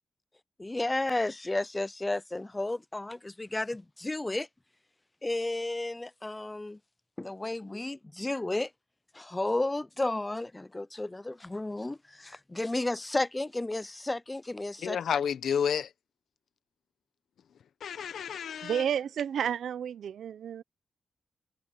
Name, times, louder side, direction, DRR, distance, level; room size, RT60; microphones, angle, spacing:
voice 1, 0.6-4.5 5.2-6.8 7.2-8.7 9.1-15.0, left 2 dB, 15° left, 0.3 m, -32 dB
voice 2, 14.8-15.9 17.8-18.8, left 8 dB, 80° left, 0.9 m, -30 dB
voice 3, 18.6-20.6, right 8 dB, 85° right, 0.6 m, -31 dB
wide cardioid pair, 135°, 0 cm